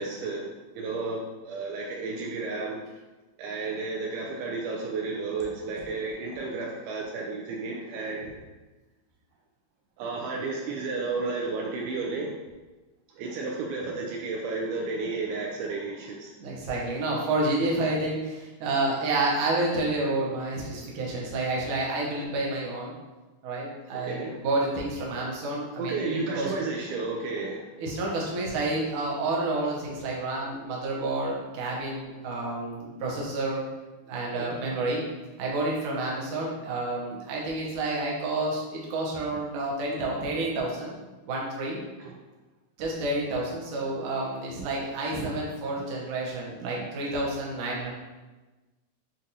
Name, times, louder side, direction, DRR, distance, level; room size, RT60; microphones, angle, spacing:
voice 1, 0.0-2.8 3.4-8.4 10.0-12.3 13.2-16.3 23.9-24.3 25.8-27.6 34.4-34.5, right 3 dB, 90° right, -1 dB, 2.1 m, -32 dB
voice 2, 16.4-22.9 23.4-26.5 27.8-33.6 34.1-35.0 35.4-41.0 41.3-41.8 42.8-47.9, right 2 dB, 75° right, -3 dB, 1.8 m, -29 dB
7.4 x 2.5 x 2.8 m, 1.2 s
omnidirectional pair, 4.8 m